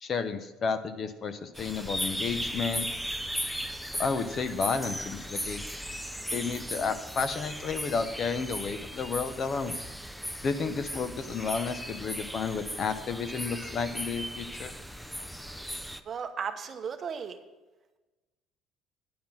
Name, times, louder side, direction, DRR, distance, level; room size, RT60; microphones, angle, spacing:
voice 1, 0.0-2.9 4.0-5.6 6.3-9.8 10.4-14.7, left 5 dB, 35° left, 11 dB, 0.7 m, -31 dB
sound 1, 1.5-16.0, equal, ahead, 0.4 m, -37 dB
voice 2, 16.1-17.4, right 6 dB, 35° right, 7 dB, 0.8 m, -35 dB
10.5 x 5.8 x 7.3 m, 1.2 s
cardioid pair, 150°, 0 cm